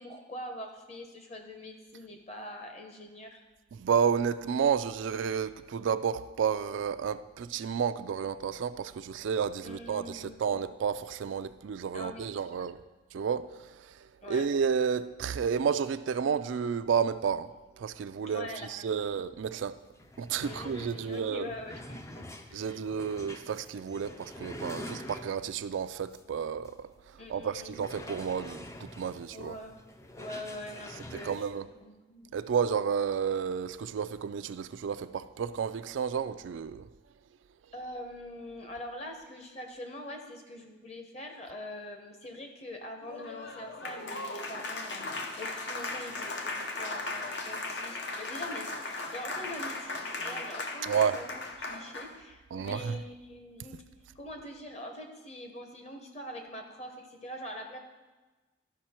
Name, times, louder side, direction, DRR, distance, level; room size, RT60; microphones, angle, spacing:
voice 1, 0.0-3.4 9.6-10.4 11.9-12.7 14.2-14.5 18.2-19.1 20.4-22.8 27.2-27.8 29.3-29.7 30.2-31.4 31.8-32.3 37.7-45.1 45.4-53.8 54.1-57.8, left 1 dB, 35° left, 1.0 m, -44 dB
voice 2, 3.7-12.8 13.1-17.5 17.8-19.8 20.2-21.5 22.5-29.5 31.2-31.6 32.3-36.9 50.8-51.2 52.5-53.0, right 7 dB, 75° right, 0.3 m, -31 dB
sound 1, 19.5-19.6 19.9-25.6 26.1-26.2 26.6-26.7 27.7-31.5, left 1 dB, 15° left, 0.4 m, -46 dB
Applause, 43.0-52.2, left 2 dB, 60° left, 0.8 m, -37 dB
12.5 x 5.4 x 4.4 m
head